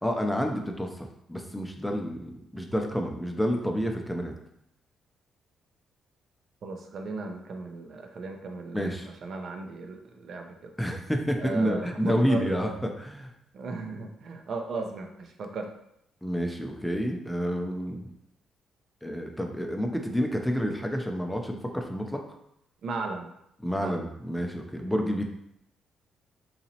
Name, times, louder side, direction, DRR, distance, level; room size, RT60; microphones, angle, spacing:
voice 1, 0.0-4.3 8.7-9.1 10.8-12.7 13.0-13.3 16.2-18.1 19.0-22.2 23.6-25.2, equal, 5° left, 3 dB, 0.5 m, -29 dB
voice 2, 6.6-10.7 11.4-12.6 13.5-15.7 22.8-23.3 23.8-24.1, right 3 dB, 60° right, 4 dB, 0.5 m, -36 dB
4.0 x 2.8 x 2.8 m, 0.77 s
cardioid pair, 90°, 0 cm